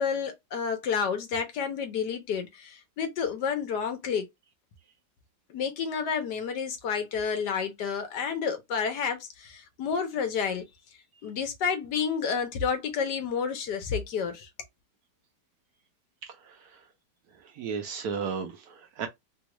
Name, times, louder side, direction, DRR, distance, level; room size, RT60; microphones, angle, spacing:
voice 1, 0.0-4.2 5.5-10.6 11.2-14.5, left 6 dB, 75° left, 1.4 m, -30 dB
voice 2, 16.4-16.8 17.4-19.1, right 6 dB, 65° right, 1.1 m, -35 dB
3.5 x 2.4 x 3.0 m
omnidirectional pair, 1.9 m